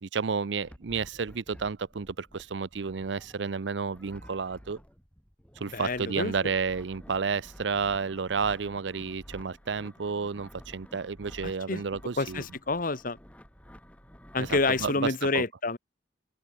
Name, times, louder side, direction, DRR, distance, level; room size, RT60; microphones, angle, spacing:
voice 1, 0.0-4.8 5.6-12.4 14.4-14.9 15.3-15.4, right 5 dB, 80° right, 0.6 m, -31 dB
sound 1, 0.6-14.9, equal, 10° left, 7.3 m, -51 dB
voice 2, 5.7-6.3 11.4-11.8 12.2-13.2 14.3-15.8, left 3 dB, 50° left, 1.7 m, -28 dB
head